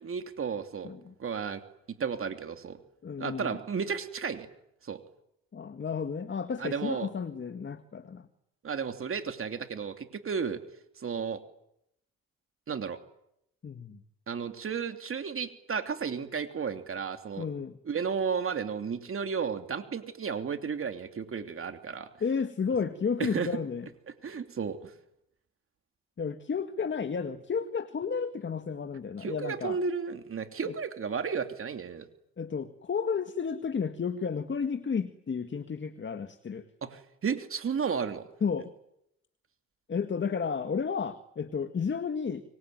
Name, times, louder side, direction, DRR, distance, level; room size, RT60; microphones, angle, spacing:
voice 1, 0.0-0.9 1.2-1.6 2.0-2.8 3.2-4.5 4.8-5.0 6.6-7.1 8.6-10.6 11.0-11.4 12.7-13.0 14.3-17.5 17.8-22.1 23.2-23.5 24.2-24.9 29.2-32.1 36.8-38.3, right 6 dB, 45° right, 7 dB, 3.0 m, -33 dB
voice 2, 3.0-3.6 5.5-8.3 13.6-14.0 17.4-17.8 22.2-23.9 26.2-29.8 30.6-30.7 32.4-36.6 38.4-38.7 39.9-42.4, left 6 dB, 40° left, 9 dB, 1.9 m, -32 dB
26.5 x 23.5 x 9.4 m, 0.79 s
cardioid pair, 90°, 30 cm